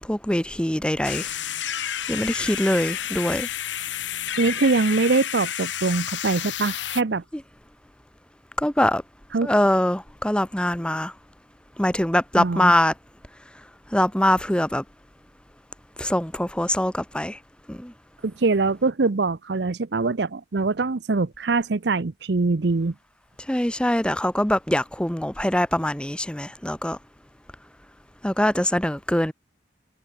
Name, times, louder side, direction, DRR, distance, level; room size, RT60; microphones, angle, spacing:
voice 1, 0.0-1.3 2.1-3.5 8.6-9.0 9.4-11.1 11.8-12.9 13.9-14.8 16.0-17.4 17.7-17.9 23.5-27.0 28.2-29.3, left 1 dB, 5° left, 1.2 m, -23 dB
sound 1, 1.0-7.0, left 10 dB, 85° left, 1.5 m, -30 dB
voice 2, 4.4-7.2 9.3-9.5 12.4-12.7 18.2-22.9, right 3 dB, 65° right, 0.7 m, -23 dB
head